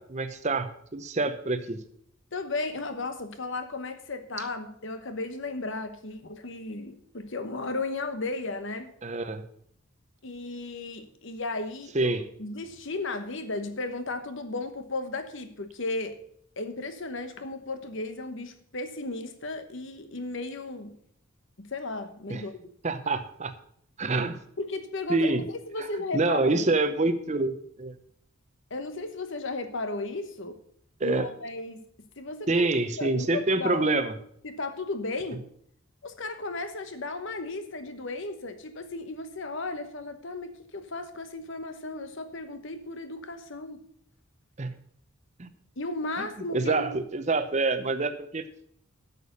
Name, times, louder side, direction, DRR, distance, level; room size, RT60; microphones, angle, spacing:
voice 1, 0.0-1.8 9.0-9.4 11.9-12.2 22.3-22.5 22.8-23.5 24.0-24.4 25.1-25.4 25.8-25.9 26.1-27.9 31.0-31.3 32.5-34.1 44.6-44.7 45.4-45.5 46.2-46.3 46.5-48.4, right 2 dB, 30° right, 10 dB, 0.7 m, -26 dB
voice 2, 2.3-8.9 10.2-16.2 16.6-20.9 21.6-22.7 24.6-26.8 28.7-30.6 31.0-31.8 32.2-32.7 33.0-33.9 34.4-35.4 36.0-43.8 45.8-46.9, left 2 dB, 60° left, 9 dB, 1.1 m, -35 dB
8.4 x 6.9 x 6.7 m, 0.67 s
head